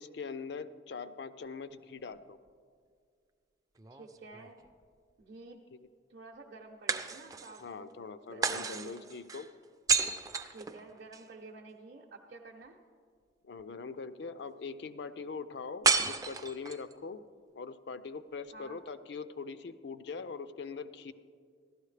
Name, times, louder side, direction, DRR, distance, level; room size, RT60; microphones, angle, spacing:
voice 1, 0.0-2.4 7.6-9.5 13.4-17.2 17.6-21.1, left 4 dB, 60° left, 13 dB, 0.4 m, -42 dB
sound 1, 3.8-4.8 6.9-7.6 8.4-11.3 15.8-16.9, right 5 dB, 20° right, 0.3 m, -32 dB
voice 2, 3.9-4.6 5.2-5.6 6.1-7.9 8.3-9.0 10.5-12.8 18.5-18.8, right 3 dB, 55° right, -3 dB, 0.7 m, -50 dB
15.0 x 12.5 x 3.3 m, 2.1 s
head